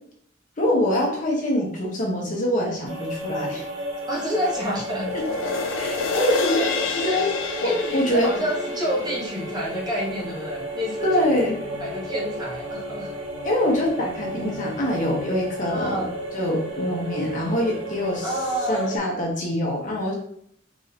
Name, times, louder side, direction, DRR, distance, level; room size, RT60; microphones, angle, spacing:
voice 1, 0.6-3.6 5.1-5.2 5.8-6.6 6.9-7.3 7.6-8.3 11.0-11.6 13.4-16.1 16.3-18.3 18.7-20.1, left 1 dB, 40° left, -2 dB, 1.1 m, -24 dB
sound 1, 2.8-19.0, right 1 dB, 80° right, 1.2 m, -33 dB
voice 2, 4.1-5.1 6.6-6.7 7.0-7.2 7.6-11.2 11.8-13.1 15.6-16.1 18.2-19.0, equal, 20° right, -4 dB, 1.1 m, -28 dB
sound 2, 4.9-11.5 11.9-12.0, left 4 dB, 80° left, 0.6 m, -30 dB
4.0 x 2.8 x 4.1 m, 0.66 s
head